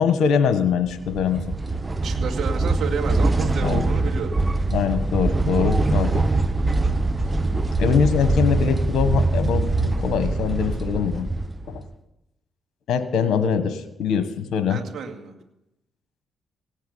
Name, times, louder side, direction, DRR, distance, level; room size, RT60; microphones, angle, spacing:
voice 1, 0.0-1.4 3.6-3.9 4.7-6.2 7.8-11.3 11.6-11.8 12.9-14.8, left 7 dB, 75° left, 10 dB, 1.4 m, -22 dB
sound 1, 0.9-11.9, right 2 dB, 25° right, 0.9 m, -23 dB
voice 2, 2.0-4.4 14.7-15.3, right 6 dB, 70° right, 2 dB, 2.3 m, -30 dB
17.5 x 8.3 x 8.1 m, 0.88 s
supercardioid pair, 55°, 0 cm